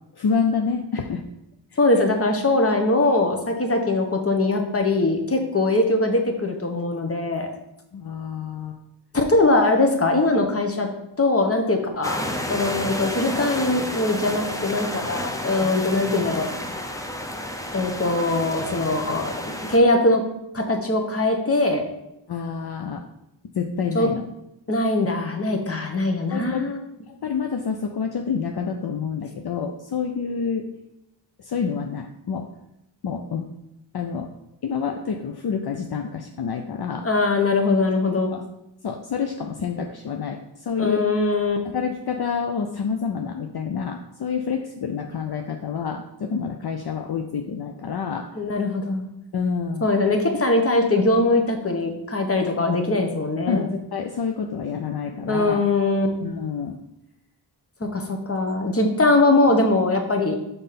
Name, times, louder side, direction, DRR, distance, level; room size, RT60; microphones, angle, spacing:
voice 1, 0.1-1.2 7.9-8.8 15.6-15.7 22.3-23.0 23.5-24.2 26.3-26.7 27.1-30.7 31.4-32.5 33.0-33.5 33.9-34.3 34.6-37.1 38.1-38.4 38.8-41.0 41.6-48.3 49.3-49.9 53.5-55.6 56.2-56.8 58.8-58.9, left 6 dB, 60° left, 4 dB, 0.6 m, -28 dB
voice 2, 1.8-7.5 9.1-10.9 11.2-12.2 12.5-16.5 17.7-19.3 19.7-20.2 20.5-21.8 23.9-24.1 24.7-26.8 37.0-38.3 40.8-41.6 48.4-49.0 49.8-53.7 55.3-56.1 57.8-60.4, left 2 dB, 30° left, 4 dB, 1.1 m, -21 dB
sound 1, 12.0-19.8, left 1 dB, 10° left, 0.7 m, -31 dB
5.5 x 4.0 x 5.8 m, 0.86 s
wide cardioid pair, 95°, 43 cm